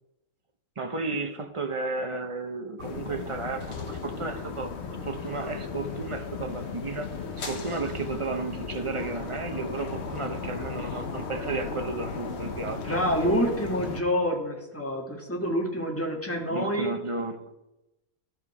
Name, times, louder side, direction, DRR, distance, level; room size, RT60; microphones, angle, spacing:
voice 1, 0.8-4.7 5.0-7.1 7.5-13.0 16.5-17.5, right 3 dB, 35° right, 0.5 m, -33 dB
sound 1, 2.8-14.0, left 4 dB, 50° left, 1.2 m, -36 dB
voice 2, 12.8-16.9, equal, 10° left, 1.6 m, -27 dB
13.5 x 5.6 x 4.8 m
omnidirectional pair, 1.6 m